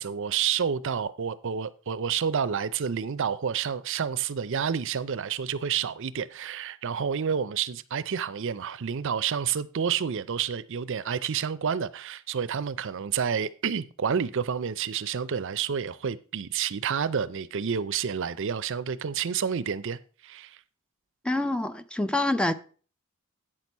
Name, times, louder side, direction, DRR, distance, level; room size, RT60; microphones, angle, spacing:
voice 1, 0.0-20.6, right 7 dB, 60° right, 0.5 m, -29 dB
voice 2, 21.2-22.5, left 2 dB, 5° left, 0.4 m, -26 dB
8.9 x 6.1 x 5.4 m
head